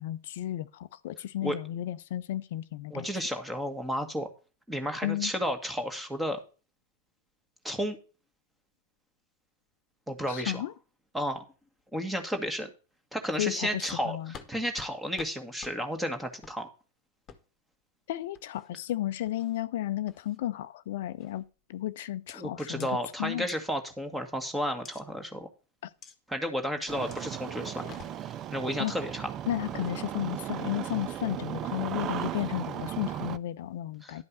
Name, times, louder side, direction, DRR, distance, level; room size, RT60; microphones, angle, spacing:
voice 1, 0.0-3.1 5.0-5.3 10.3-10.7 13.4-14.3 18.1-21.4 21.7-22.9 23.2-23.5 25.8-25.9 28.8-28.9 29.5-34.2, left 13 dB, 55° left, 0.6 m, -33 dB
voice 2, 2.9-4.3 4.7-6.4 7.6-8.0 10.1-10.6 11.1-11.4 11.9-12.7 13.1-16.7 22.3-25.5 26.3-27.9 28.2-29.3 34.0-34.2, equal, 5° right, 1.7 m, -32 dB
sound 1, 14.3-14.5 14.8-14.9 15.2-15.3 15.6-15.8 16.4-16.6 17.3-17.4 18.3-18.7 19.3-19.6 20.1-20.4 21.2-21.5 22.3-22.4 22.8-22.9 23.5-23.6 24.8-25.0 26.0-26.2 27.1-27.3 27.7-28.4 29.6-30.0, left 7 dB, 25° left, 1.4 m, -48 dB
Engine starting, 26.9-33.4, right 11 dB, 30° right, 0.5 m, -36 dB
11.5 x 5.3 x 5.8 m
figure-of-eight pair, 95°, 0 cm